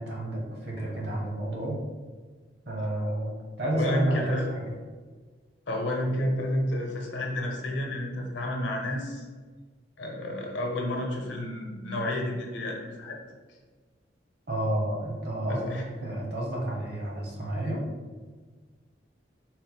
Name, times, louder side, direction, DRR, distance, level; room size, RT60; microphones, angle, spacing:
voice 1, 0.0-1.8 2.7-3.3 3.6-4.7 14.5-15.7 16.0-17.8, right 1 dB, 60° right, -2 dB, 1.0 m, -31 dB
voice 2, 3.6-4.4 5.7-9.2 10.0-13.2 15.5-15.8, left 1 dB, 80° left, 1 dB, 0.8 m, -30 dB
4.2 x 2.1 x 4.3 m, 1.4 s
head